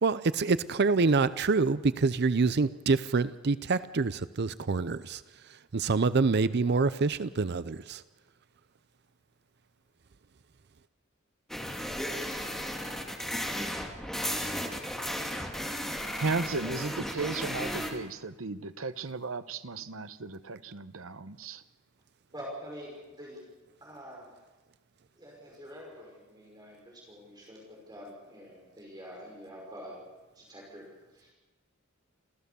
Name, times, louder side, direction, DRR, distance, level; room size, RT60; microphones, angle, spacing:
voice 1, 0.0-5.2 5.5-8.0, right 4 dB, 55° right, 15 dB, 0.6 m, -26 dB
sound 1, 11.5-17.9, equal, ahead, 2.5 m, -34 dB
voice 2, 16.1-21.6, right 3 dB, 80° right, 12 dB, 1.0 m, -35 dB
voice 3, 22.3-23.4 23.8-24.3 25.2-30.0 30.3-30.9 31.1-31.3, equal, 20° right, -2 dB, 5.5 m, -46 dB
27.5 x 15.5 x 6.9 m, 1.2 s
head